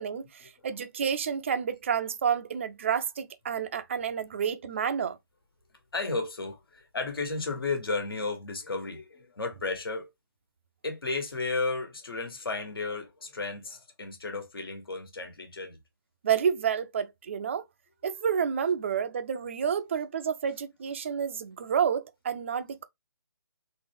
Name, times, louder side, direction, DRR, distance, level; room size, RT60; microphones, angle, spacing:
voice 1, 0.0-5.2 16.2-17.6 18.0-22.8, right 7 dB, 30° right, 0.3 m, -29 dB
voice 2, 5.9-10.1 10.8-15.8, left 3 dB, 70° left, 1.5 m, -33 dB
3.7 x 2.1 x 3.4 m
hypercardioid pair, 160°, 13 cm